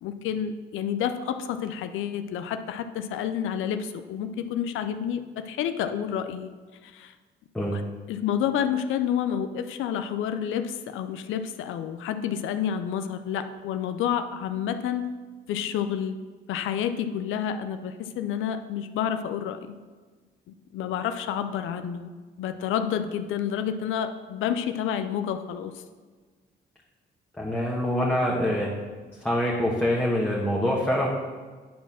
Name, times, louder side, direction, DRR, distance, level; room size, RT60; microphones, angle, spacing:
voice 1, 0.0-6.5 6.8-7.1 7.7-7.8 8.1-15.1 15.5-16.2 16.5-19.7 20.5-22.1 22.4-25.8, left 9 dB, 85° left, 9 dB, 0.5 m, -29 dB
voice 2, 27.4-28.7 29.2-31.1, left 1 dB, 5° left, -4 dB, 1.3 m, -25 dB
9.3 x 4.3 x 5.6 m, 1.4 s
cardioid pair, 90°, 20 cm